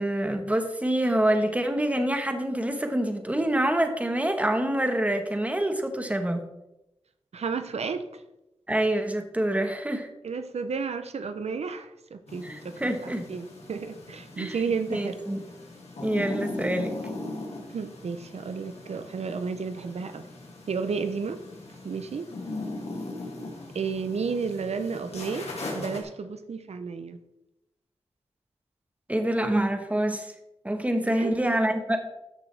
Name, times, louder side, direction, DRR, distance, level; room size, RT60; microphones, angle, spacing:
voice 1, 0.0-6.5 8.7-10.1 12.4-13.2 14.4-15.4 16.0-17.0 29.1-30.3 30.6-32.0, right 1 dB, 15° right, 6 dB, 1.2 m, -26 dB
voice 2, 7.3-8.2 10.2-15.2 17.7-20.3 20.7-21.4 21.8-22.3 23.7-27.2 31.0-31.3, right 5 dB, 75° right, 9 dB, 0.6 m, -32 dB
sound 1, 12.3-26.0, left 2 dB, 75° left, 2.4 m, -39 dB
13.5 x 6.1 x 3.4 m, 0.90 s
wide cardioid pair, 75°, 11 cm